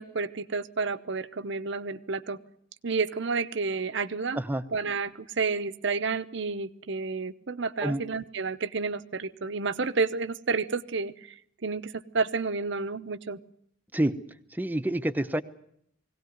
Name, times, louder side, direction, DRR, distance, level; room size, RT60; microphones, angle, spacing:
voice 1, 0.0-2.4 2.8-4.4 4.7-11.3 11.6-13.4, right 4 dB, 60° right, 13 dB, 0.9 m, -30 dB
voice 2, 14.5-15.4, right 1 dB, 10° right, 9 dB, 0.9 m, -27 dB
21.5 x 17.5 x 9.4 m, 0.70 s
head